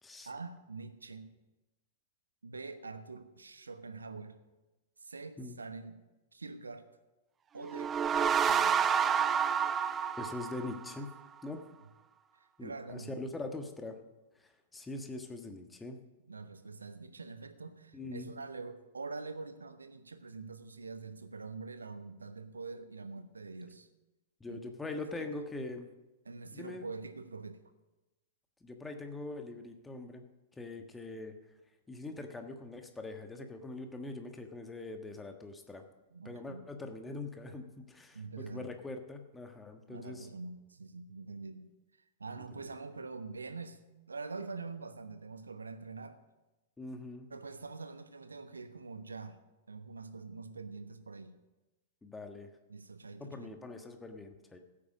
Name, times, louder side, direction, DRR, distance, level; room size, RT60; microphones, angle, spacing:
voice 1, 0.2-1.3 2.4-4.4 5.0-6.0 6.3-6.9 7.5-9.0 12.4-13.2 16.3-23.9 24.5-24.6 24.9-25.5 26.2-27.6 36.1-36.6 38.1-38.7 39.9-41.7 42.2-43.8 44.1-46.2 47.3-49.4 49.7-51.3 52.7-53.8, right 4 dB, 75° right, 11 dB, 1.1 m, -45 dB
sound 1, 7.6-11.1, right 7 dB, 20° right, 0.4 m, -29 dB
voice 2, 10.2-11.1 11.4-11.6 12.6-14.0 14.4-16.0 17.9-18.3 24.4-25.9 26.5-26.9 28.6-30.2 30.6-31.3 31.9-35.8 36.2-40.3 42.5-42.6 46.8-47.3 52.0-52.5 53.2-54.6, left 2 dB, 10° left, 5 dB, 1.4 m, -43 dB
15.0 x 8.7 x 6.4 m, 1.1 s
figure-of-eight pair, 100°, 0 cm